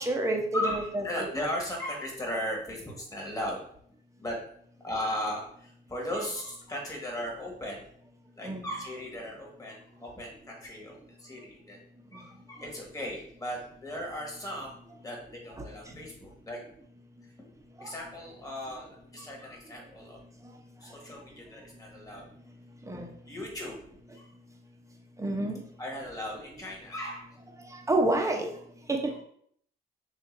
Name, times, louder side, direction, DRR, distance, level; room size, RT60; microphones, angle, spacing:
voice 1, 0.0-1.3 8.4-8.6 17.8-17.9 22.9-23.1 25.2-25.5 27.9-28.5 28.9-29.1, right 2 dB, 15° right, 2 dB, 0.8 m, -28 dB
voice 2, 0.5-3.6 4.2-4.4 4.8-7.8 8.4-11.8 12.1-14.7 15.0-16.6 17.4-17.5 17.8-20.2 20.8-22.3 23.3-23.8 24.1-24.3 25.8-27.4 29.0-29.2, left 1 dB, 20° left, -2 dB, 1.6 m, -37 dB
6.6 x 2.5 x 2.6 m, 0.65 s
cardioid pair, 90°, 20 cm